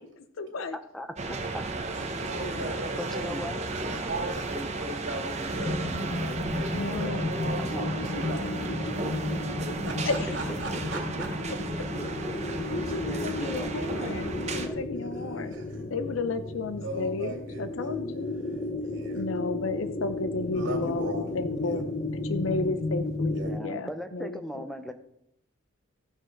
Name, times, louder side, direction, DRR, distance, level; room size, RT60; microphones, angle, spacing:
voice 1, 0.4-0.8 2.2-2.8 6.7-7.4 10.0-10.3 12.7-15.5 15.9-18.3 19.1-21.8 22.3-24.6, left 3 dB, 75° left, 10 dB, 0.6 m, -33 dB
voice 2, 0.9-1.6 3.0-3.6 7.6-7.9 10.5-11.3 12.0-12.3 13.0-13.7 14.6-14.8 23.4-24.9, equal, ahead, 8 dB, 0.7 m, -38 dB
sound 1, 1.2-14.7, right 3 dB, 35° right, 0.9 m, -34 dB
voice 3, 1.9-3.4 3.7-5.7 6.2-8.7 9.8-11.3 14.9-15.9 16.8-17.6 18.8-19.2 20.5-21.8 23.3-23.5, right 1 dB, 60° right, 2 dB, 2.5 m, -38 dB
sound 2, 5.5-23.6, left 2 dB, 30° left, 0.7 m, -33 dB
15.0 x 6.1 x 4.5 m, 0.74 s
head